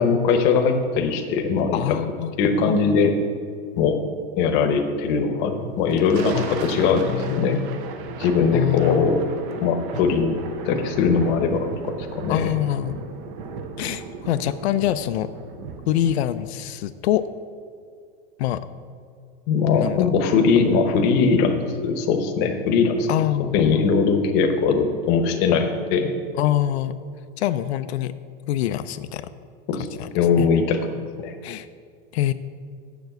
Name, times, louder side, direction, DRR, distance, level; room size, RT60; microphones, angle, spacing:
voice 1, 0.0-1.9 2.4-3.1 3.8-4.1 4.4-7.6 8.2-9.2 9.6-10.4 10.6-12.5 19.5-23.1 23.4-26.1 29.7-29.9 30.1-31.3, left 5 dB, 30° left, 6 dB, 0.8 m, -21 dB
voice 2, 1.7-2.4 2.7-3.0 6.3-7.8 8.5-9.2 12.3-13.0 13.8-15.3 15.9-17.2 18.4-18.6 19.7-20.1 23.1-23.6 26.3-26.9 27.4-28.1 28.5-29.3 30.0-30.1 30.4-30.5 31.4-31.7 32.1-32.3, left 12 dB, 80° left, 11 dB, 0.5 m, -25 dB
Thunder, 5.7-16.5, right 5 dB, 20° right, 0.3 m, -36 dB
7.2 x 6.8 x 7.8 m, 2.3 s
supercardioid pair, 170°, 32 cm